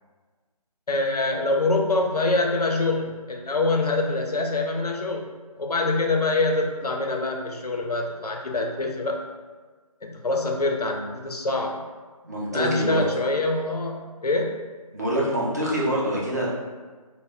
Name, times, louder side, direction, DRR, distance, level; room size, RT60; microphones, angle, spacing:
voice 1, 0.9-5.3 5.6-9.2 10.0-11.9 12.5-14.6, left 2 dB, 80° left, 2 dB, 0.5 m, -25 dB
voice 2, 12.2-13.0 14.9-16.5, right 1 dB, 25° right, -6 dB, 0.4 m, -25 dB
2.1 x 2.0 x 3.5 m, 1.4 s
figure-of-eight pair, 155°, 20 cm